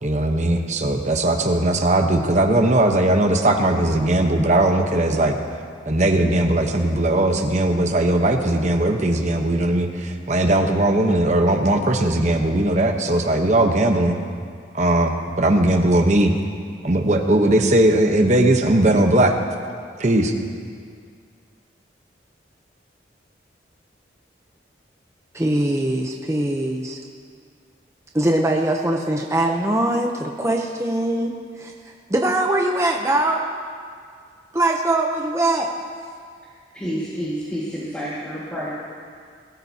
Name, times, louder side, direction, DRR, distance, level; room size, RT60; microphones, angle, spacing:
voice 1, 0.0-5.4 5.9-14.2 14.7-16.3 16.8-19.4 20.0-20.3, right 1 dB, 40° right, 4 dB, 0.9 m, -19 dB
voice 2, 25.3-27.0 28.1-31.7 32.1-33.4 34.5-35.7, right 1 dB, 15° right, 1 dB, 0.7 m, -22 dB
voice 3, 36.7-38.7, equal, 10° left, -10 dB, 1.8 m, -29 dB
21.0 x 13.5 x 2.8 m, 2.1 s
head